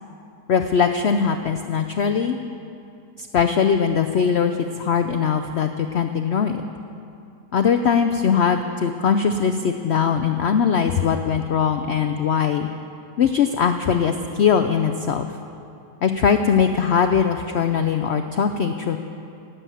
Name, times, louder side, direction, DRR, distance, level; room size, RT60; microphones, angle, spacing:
voice 1, 0.5-2.4 3.2-6.6 7.5-12.7 13.2-15.3 16.0-19.0, left 7 dB, 75° left, 8 dB, 0.6 m, -21 dB
16.5 x 7.8 x 9.1 m, 2.6 s
omnidirectional pair, 1.8 m